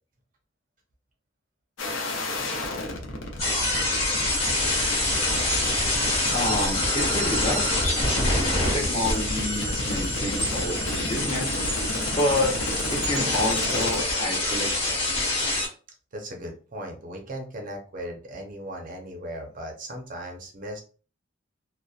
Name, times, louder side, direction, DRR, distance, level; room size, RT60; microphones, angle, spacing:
sound 1, 1.8-14.0, left 1 dB, 75° left, 0.6 m, -33 dB
sound 2, 3.4-15.7, left 2 dB, 55° left, 1.2 m, -26 dB
voice 1, 6.3-7.8 8.7-11.5 12.1-12.5 12.9-15.2, left 1 dB, 25° left, -1 dB, 0.6 m, -28 dB
voice 2, 16.1-20.8, equal, 40° right, 2 dB, 0.5 m, -37 dB
2.6 x 2.0 x 2.3 m, 0.37 s
head